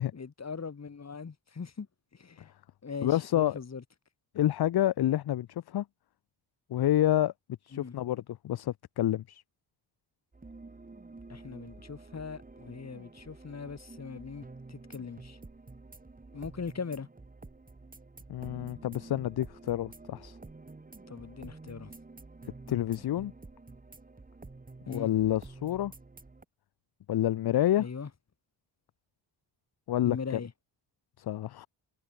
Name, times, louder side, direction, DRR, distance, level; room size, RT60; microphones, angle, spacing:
voice 1, 0.1-1.9 2.1-2.5 2.8-3.8 7.7-8.0 11.3-15.4 16.3-17.1 21.1-21.9 24.9-25.1 27.7-28.1 30.0-30.5, left 5 dB, 35° left, 3.7 m, -40 dB
voice 2, 3.0-3.6 4.3-5.8 6.7-7.3 7.6-9.4 18.3-20.4 22.7-23.3 24.9-25.9 27.1-27.9 29.9-30.2 31.2-31.7, left 12 dB, 55° left, 0.6 m, -28 dB
sound 1, 10.3-26.4, right 3 dB, 20° right, 3.4 m, -50 dB
wide cardioid pair, 155°, 45 cm